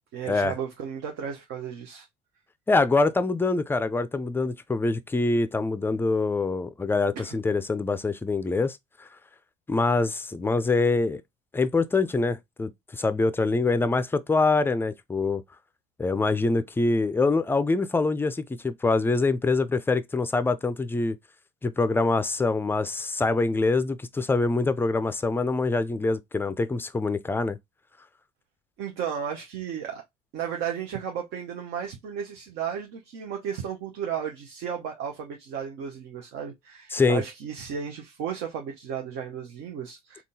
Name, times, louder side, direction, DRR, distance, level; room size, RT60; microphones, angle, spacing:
voice 1, 0.1-2.1 7.2-7.4 28.8-30.0 30.3-40.2, right 8 dB, 65° right, 0.7 m, -34 dB
voice 2, 2.7-9.1 9.7-11.2 11.5-15.4 16.0-21.2 21.6-27.6 36.9-37.2, left 3 dB, 10° left, 0.4 m, -25 dB
3.6 x 2.3 x 2.7 m
hypercardioid pair, 75°, 19 cm